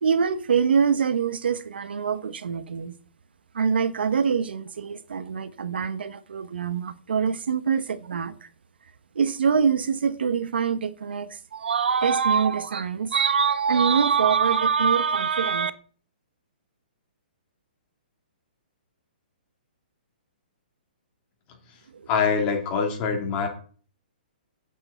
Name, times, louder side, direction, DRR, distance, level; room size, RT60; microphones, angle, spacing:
voice 1, 0.0-2.9 3.5-8.5 9.1-15.7 21.9-22.1, right 6 dB, 85° right, 1.1 m, -24 dB
voice 2, 22.1-23.5, left 6 dB, 25° left, 3.0 m, -24 dB
8.8 x 6.7 x 8.3 m
hypercardioid pair, 165°, 5 cm